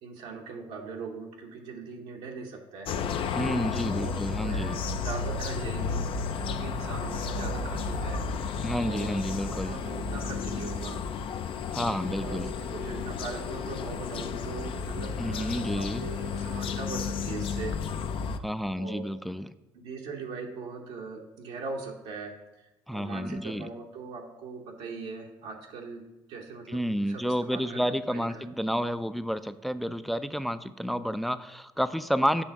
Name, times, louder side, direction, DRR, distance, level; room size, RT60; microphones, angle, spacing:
voice 1, 0.0-3.0 3.9-6.1 6.4-9.2 9.5-11.0 12.2-17.8 18.8-19.0 19.7-28.5, right 4 dB, 75° right, 0 dB, 1.0 m, -40 dB
sound 1, 2.9-18.4, left 5 dB, 55° left, 0.5 m, -32 dB
voice 2, 3.3-4.8 8.6-9.8 11.7-12.5 15.2-16.1 18.4-19.5 22.9-23.7 26.7-32.4, equal, ahead, 12 dB, 0.4 m, -30 dB
8.2 x 3.3 x 5.9 m, 0.98 s
supercardioid pair, 70°, 11 cm